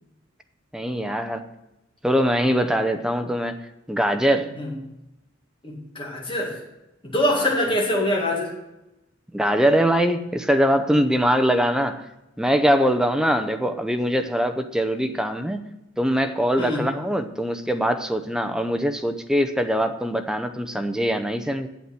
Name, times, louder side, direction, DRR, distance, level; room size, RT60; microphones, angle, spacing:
voice 1, 0.7-1.5 2.0-3.5 3.9-4.5 9.3-12.0 12.4-15.7 16.0-21.7, equal, 5° right, 7 dB, 0.6 m, -22 dB
voice 2, 5.6-6.6 7.0-8.5 16.6-16.9, left 1 dB, 25° left, -2 dB, 2.1 m, -24 dB
8.5 x 7.8 x 5.9 m, 0.94 s
head